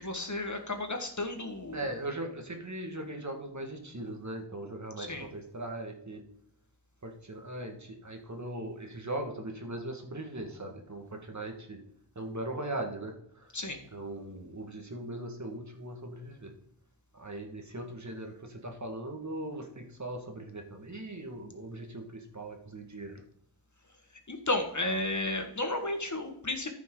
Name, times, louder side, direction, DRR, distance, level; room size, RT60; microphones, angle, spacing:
voice 1, 0.0-1.8 5.0-5.3 13.5-13.8 24.3-26.7, left 2 dB, 40° left, 5 dB, 1.5 m, -33 dB
voice 2, 1.7-6.2 7.0-11.8 12.2-13.6 13.9-16.5 17.1-23.2, right 1 dB, 40° right, 3 dB, 1.8 m, -39 dB
14.0 x 5.9 x 3.8 m, 0.71 s
wide cardioid pair, 60°, 43 cm